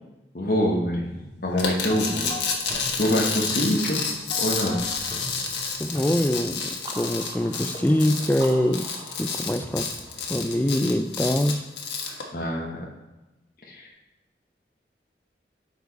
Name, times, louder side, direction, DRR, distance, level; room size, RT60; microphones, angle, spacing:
voice 1, 0.3-2.3 2.7-4.0 4.4-4.9 12.3-12.9 13.7-13.9, equal, 50° left, -3 dB, 1.1 m, -25 dB
sound 1, 1.6-12.2, left 5 dB, 90° left, 1.4 m, -30 dB
sound 2, 1.8-6.6, left 1 dB, 25° left, 2.1 m, -40 dB
voice 2, 5.8-9.9 10.3-11.6, left 1 dB, 10° left, 10 dB, 0.3 m, -24 dB
sound 3, 6.0-11.6, right 2 dB, 25° right, 0.6 m, -44 dB
9.0 x 4.7 x 4.0 m, 1.0 s
head